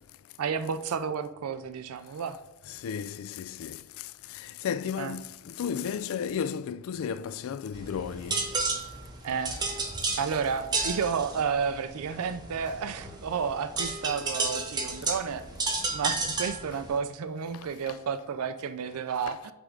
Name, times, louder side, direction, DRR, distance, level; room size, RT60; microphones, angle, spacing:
voice 1, 0.4-2.4 5.0-5.1 9.2-9.5 10.2-15.4 15.9-19.5, right 6 dB, 85° right, 0.4 m, -31 dB
voice 2, 2.7-3.8 4.3-8.5 19.3-19.4, left 7 dB, 70° left, 0.3 m, -34 dB
sound 1, 7.7-17.0, right 3 dB, 20° right, 0.7 m, -32 dB
8.2 x 3.6 x 3.7 m
head